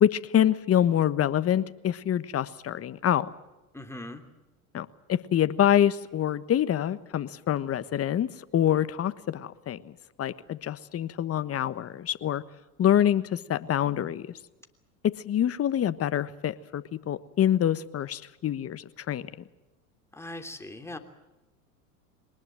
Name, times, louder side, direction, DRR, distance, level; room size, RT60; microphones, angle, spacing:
voice 1, 0.0-3.3 4.7-9.9 10.2-12.4 12.8-14.3 15.0-19.2, left 10 dB, 35° left, 14 dB, 1.3 m, -26 dB
voice 2, 3.7-4.2 20.1-21.0, left 1 dB, 5° left, 5 dB, 3.1 m, -40 dB
23.0 x 20.0 x 7.7 m, 1.0 s
hypercardioid pair, 95°, 42 cm